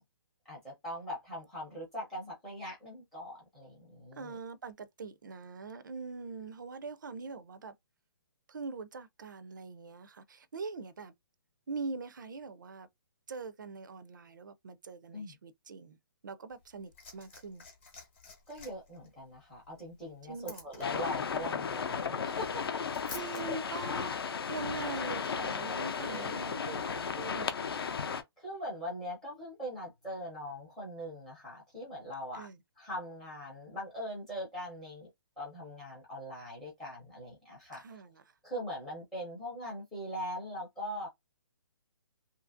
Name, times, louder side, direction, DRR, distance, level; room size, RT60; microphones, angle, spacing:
voice 1, 0.5-4.4 15.1-15.3 18.5-22.9 26.0-26.4 28.4-32.5 32.8-35.1 35.4-37.8 38.4-41.1, equal, 5° left, 0.6 m, -41 dB
voice 2, 4.1-7.7 8.5-11.1 11.7-12.9 13.3-16.0 16.2-17.6 20.3-20.8 23.1-24.2 24.5-27.6 32.3-32.6 37.7-38.2, right 4 dB, 50° right, 0.4 m, -43 dB
Liquid, 16.5-23.4 24.5-24.6, left 4 dB, 25° left, 0.9 m, -51 dB
sound 1, 20.8-28.2, left 6 dB, 65° left, 0.6 m, -35 dB
2.8 x 2.5 x 2.5 m
hypercardioid pair, 180°, 13 cm